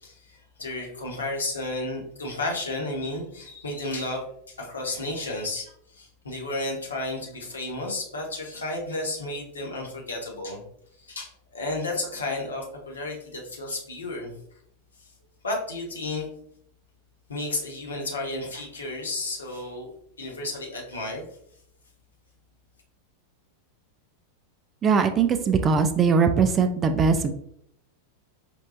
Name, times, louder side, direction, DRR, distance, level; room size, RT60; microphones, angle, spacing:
voice 1, 0.0-10.6 11.0-14.3 15.0-15.1 15.4-16.3 17.3-19.9 20.2-21.3, left 2 dB, 75° left, -1 dB, 1.1 m, -32 dB
voice 2, 24.8-27.3, right 5 dB, 25° right, 8 dB, 0.4 m, -21 dB
5.1 x 3.1 x 2.5 m, 0.70 s
figure-of-eight pair, 90°, 0 cm